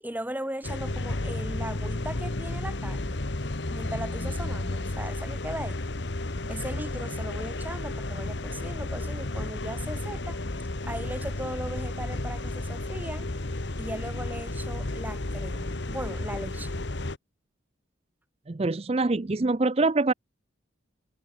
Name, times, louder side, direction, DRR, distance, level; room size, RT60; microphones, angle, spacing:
voice 1, 0.0-3.2 3.7-5.8 6.5-10.4 10.8-13.3 13.8-16.8, right 1 dB, 10° right, 2.2 m, -38 dB
sound 1, 0.6-17.2, left 2 dB, 60° left, 1.3 m, -32 dB
voice 2, 18.5-20.1, right 3 dB, 30° right, 0.5 m, -24 dB
head